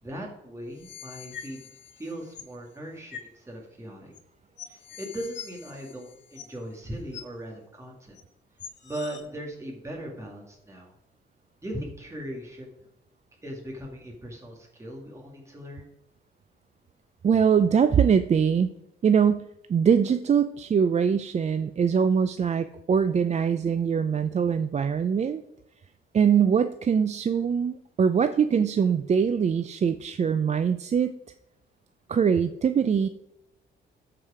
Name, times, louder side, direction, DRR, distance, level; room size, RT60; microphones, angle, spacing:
voice 1, 0.0-1.7 2.0-4.1 4.6-8.2 8.8-10.9 11.6-12.7 13.4-15.9, right 1 dB, 15° right, -1 dB, 2.2 m, -39 dB
sound 1, 0.7-2.6 3.1-3.3 4.1-4.2 4.6-6.7 7.1-7.2 8.1-8.2 8.6-9.2, left 8 dB, 60° left, 1.8 m, -44 dB
voice 2, 17.2-18.7 19.0-25.4 26.1-31.1 32.1-33.1, right 7 dB, 35° right, 11 dB, 0.5 m, -23 dB
13.5 x 4.9 x 4.9 m, 0.79 s
cardioid pair, 90°, 20 cm